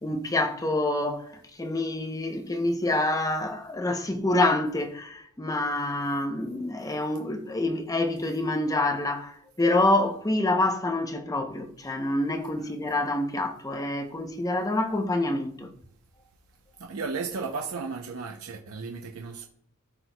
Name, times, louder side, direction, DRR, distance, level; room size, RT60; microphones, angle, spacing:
voice 1, 0.0-15.7, left 2 dB, 15° left, 0.7 m, -27 dB
voice 2, 16.8-19.5, right 4 dB, 80° right, 0.6 m, -34 dB
13.0 x 4.5 x 2.2 m
head